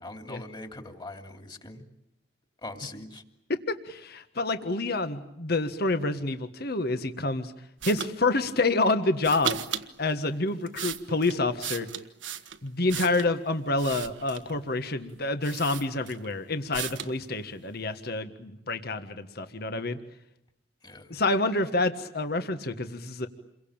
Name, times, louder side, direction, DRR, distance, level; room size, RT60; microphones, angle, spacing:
voice 1, 0.0-1.8 2.6-3.2 20.8-21.1, left 2 dB, 25° left, 6 dB, 2.9 m, -41 dB
voice 2, 3.5-7.5 7.8-9.6 10.0-11.9 12.6-20.0 21.1-23.3, left 2 dB, 55° left, 9 dB, 1.6 m, -28 dB
sound 1, 7.8-8.1 9.2-9.9 10.5-13.3 13.8-14.6 15.1-15.2 15.4-16.3 16.7-17.2, right 9 dB, 90° right, 1.5 m, -36 dB
29.0 x 23.0 x 8.9 m, 0.83 s
head